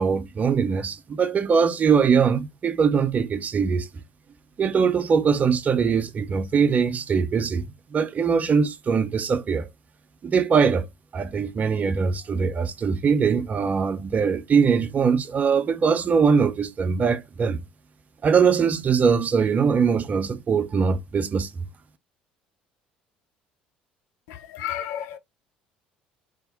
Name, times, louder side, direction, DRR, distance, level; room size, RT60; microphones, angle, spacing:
voice 1, 0.0-3.9 4.6-9.7 10.2-10.9 11.1-17.6 18.2-21.5, right 6 dB, 35° right, 0.6 m, -22 dB
voice 2, 24.3-25.2, left 10 dB, 65° left, 0.5 m, -32 dB
2.8 x 2.1 x 3.8 m
figure-of-eight pair, 60°, 5 cm